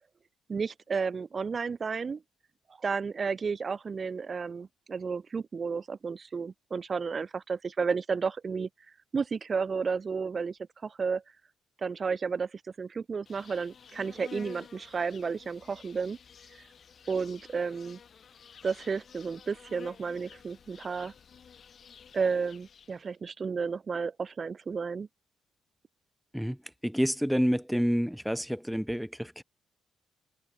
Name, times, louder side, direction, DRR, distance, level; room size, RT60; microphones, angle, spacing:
voice 1, 0.5-2.2 2.8-8.7 9.1-11.2 11.8-16.2 17.1-18.0 18.6-21.1 22.1-25.1, right 5 dB, 40° right, 2.2 m, -32 dB
Insect, 13.3-23.1, left 7 dB, 50° left, 7.2 m, -51 dB
voice 2, 26.8-29.4, equal, ahead, 1.0 m, -28 dB
cardioid pair, 90°, 0 cm